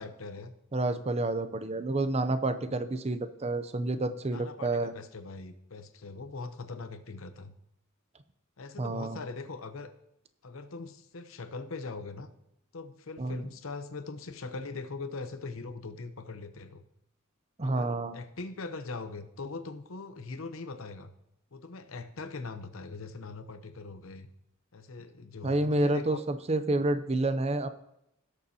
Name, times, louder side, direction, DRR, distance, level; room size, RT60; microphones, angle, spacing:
voice 1, 0.0-0.5 4.3-7.5 8.6-9.9 10.4-12.3 12.7-16.8 17.6-21.1 21.5-24.3 24.7-26.2, left 3 dB, 70° left, 10 dB, 0.8 m, -41 dB
voice 2, 0.7-4.9 8.8-9.2 13.2-13.5 17.6-18.1 25.4-27.7, right 2 dB, 30° right, 11 dB, 0.6 m, -29 dB
17.5 x 6.7 x 2.8 m, 0.81 s
head